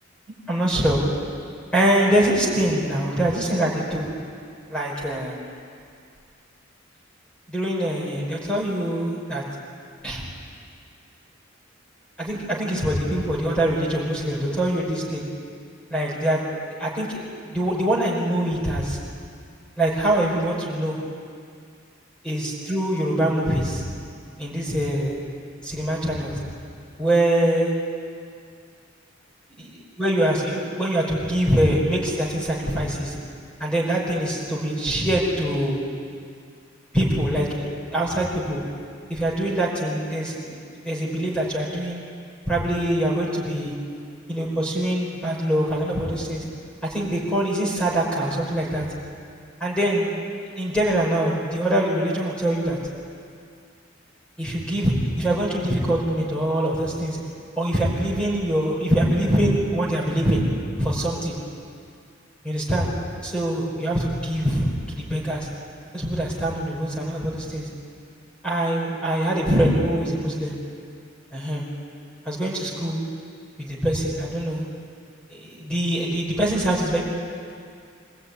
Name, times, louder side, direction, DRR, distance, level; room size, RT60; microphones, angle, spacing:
voice 1, 0.5-1.0 1.7-4.1 4.7-5.4 7.5-9.4 10.0-10.3 12.2-15.2 15.9-16.5 16.8-19.0 19.8-21.0 22.2-23.8 24.4-25.2 25.6-26.4 27.0-27.7 29.5-33.2 33.6-35.8 36.9-37.6 37.9-38.6 39.1-42.0 42.5-43.7 44.3-46.4 46.8-48.9 49.6-50.1 50.6-52.8 54.4-57.2 57.6-60.4 60.8-61.4 62.4-62.9 63.2-65.5 65.9-67.7 68.4-70.6 71.3-71.7 72.3-73.0 73.6-74.6 75.3-77.0, right 1 dB, 5° left, -4 dB, 5.3 m, -24 dB
24.5 x 19.5 x 9.8 m, 2.3 s
head